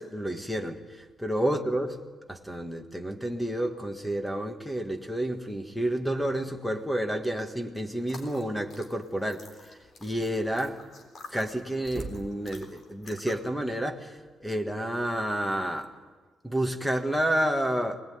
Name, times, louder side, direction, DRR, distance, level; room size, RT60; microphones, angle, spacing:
voice 1, 0.0-2.0 2.3-10.9 11.3-15.9 16.4-18.0, right 1 dB, ahead, 5 dB, 1.7 m, -30 dB
sound 1, 8.0-13.5, left 3 dB, 45° left, 3.9 m, -49 dB
sound 2, 11.8-12.5 14.2-14.3 16.1-16.3 17.2-17.3, right 4 dB, 35° right, 2.9 m, -41 dB
24.5 x 20.0 x 9.5 m, 1.3 s
cardioid pair, 160°, 0 cm